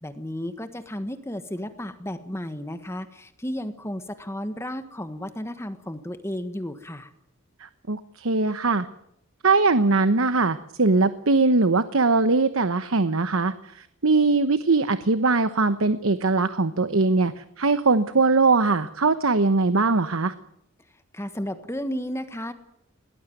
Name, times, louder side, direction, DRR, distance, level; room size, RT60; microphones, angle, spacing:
voice 1, 0.0-7.1 21.1-22.5, equal, 10° left, 9 dB, 1.4 m, -33 dB
voice 2, 7.6-8.9 9.4-20.3, right 3 dB, 75° right, 12 dB, 1.1 m, -21 dB
21.5 x 18.5 x 9.3 m, 0.77 s
head